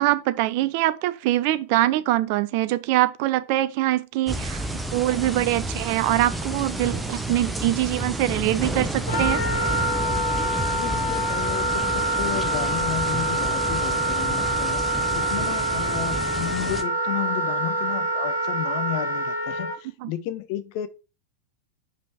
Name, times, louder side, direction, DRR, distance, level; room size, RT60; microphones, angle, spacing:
voice 1, 0.0-9.4 20.0-20.1, right 15 dB, 45° right, 0.5 m, -23 dB
sound 1, 4.3-16.8, right 2 dB, 5° right, 0.9 m, -30 dB
Wind instrument woodwind instrument, 9.1-19.7, right 1 dB, 65° left, 2.1 m, -26 dB
voice 2, 10.7-20.9, left 13 dB, 45° left, 0.8 m, -33 dB
5.7 x 5.0 x 4.8 m
figure-of-eight pair, 90°, 0 cm